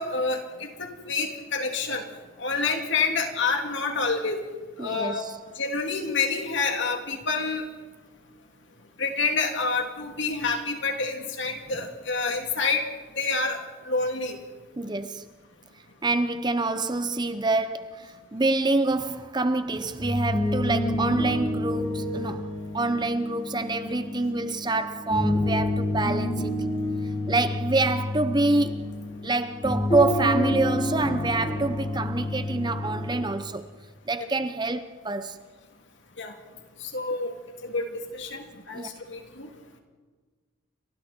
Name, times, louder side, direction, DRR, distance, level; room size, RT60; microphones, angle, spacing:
voice 1, 0.0-2.0 2.4-4.4 4.8-5.2 5.6-7.6 9.0-12.8 13.2-13.6 13.8-14.4 34.2-34.3 36.2-36.3 36.9-37.3 37.6-39.5, left 4 dB, 55° left, 3.1 m, -28 dB
voice 2, 4.8-5.4 14.8-15.3 16.0-26.7 27.3-28.9 29.2-33.7 34.1-35.4 38.7-38.9, right 2 dB, 20° right, 0.7 m, -26 dB
sound 1, 19.9-33.2, left 1 dB, 20° left, 3.4 m, -29 dB
29.5 x 25.0 x 4.5 m
head